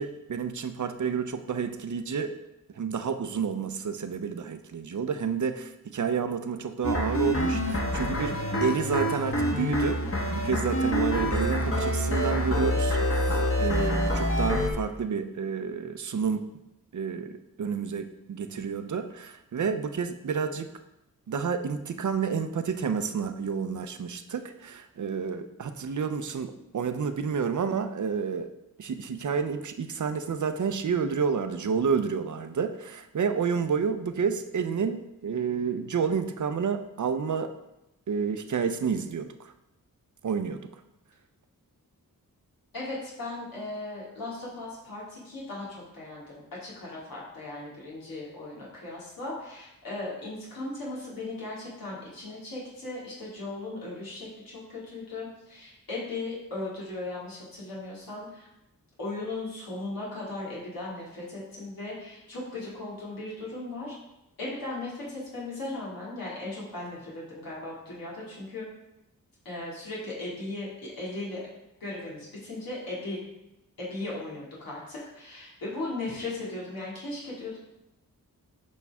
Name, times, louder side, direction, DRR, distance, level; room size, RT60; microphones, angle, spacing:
voice 1, 0.0-2.3 2.8-13.0 13.3-16.5 16.9-20.7 21.3-28.5 28.8-37.5 38.1-39.3 40.2-40.7, right 6 dB, 60° right, 8 dB, 0.7 m, -30 dB
sound 1, 6.8-14.7, equal, 40° left, 1.4 m, -26 dB
voice 2, 42.7-46.3 46.6-58.5 59.0-63.9 64.4-68.7 69.4-70.7 71.0-71.4 71.8-73.2 73.8-77.6, left 2 dB, 85° left, -6 dB, 2.5 m, -37 dB
8.5 x 5.4 x 3.6 m, 0.90 s
wide cardioid pair, 75°, 34 cm